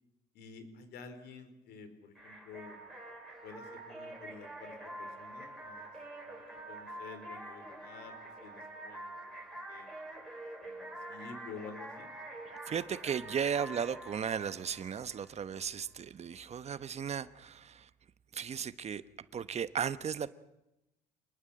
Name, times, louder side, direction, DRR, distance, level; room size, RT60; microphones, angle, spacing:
voice 1, 0.3-2.8 3.4-5.9 6.7-9.3 9.7-9.9 10.6-12.1, left 4 dB, 75° left, 4.6 m, -50 dB
sound 1, 2.1-15.6, right 1 dB, ahead, 7.7 m, -46 dB
voice 2, 12.5-17.9 18.3-19.0 19.3-20.3, right 7 dB, 40° right, 1.1 m, -36 dB
28.0 x 20.5 x 8.9 m
cardioid pair, 110°, 17 cm